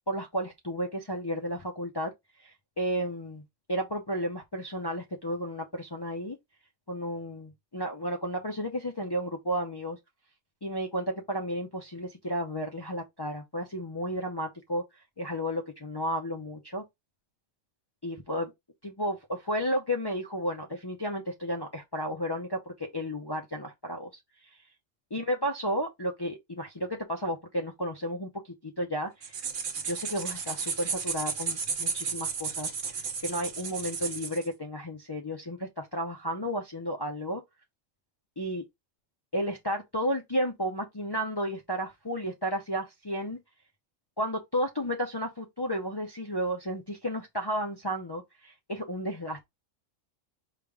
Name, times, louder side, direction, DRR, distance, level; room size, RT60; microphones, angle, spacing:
voice 1, 0.1-2.1 2.4-3.4 3.7-6.4 6.9-10.0 10.6-14.8 15.2-16.8 18.0-18.5 18.8-24.1 25.1-28.3 28.6-29.3 29.8-37.4 38.4-38.6 39.3-43.4 44.2-49.5, equal, 40° left, 0.3 m, -32 dB
sound 1, 29.2-34.5, right 5 dB, 50° right, 0.8 m, -33 dB
5.1 x 2.4 x 3.4 m
omnidirectional pair, 1.4 m